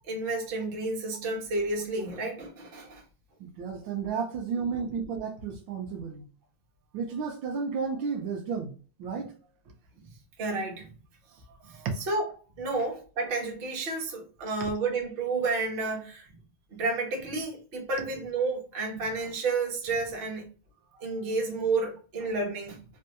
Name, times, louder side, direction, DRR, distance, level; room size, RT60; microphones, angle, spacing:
voice 1, 0.1-3.0 4.6-4.9 10.0-10.1 10.4-10.9 11.6-11.8 12.1-12.3 12.6-16.3 16.7-20.5 21.0-22.8, right 3 dB, 50° right, 0.7 m, -31 dB
voice 2, 3.4-6.3 6.9-8.7 9.0-9.3 11.7-12.0 14.4-14.7 20.9-21.1, right 5 dB, 75° right, 1.3 m, -33 dB
3.5 x 2.2 x 2.6 m
omnidirectional pair, 2.2 m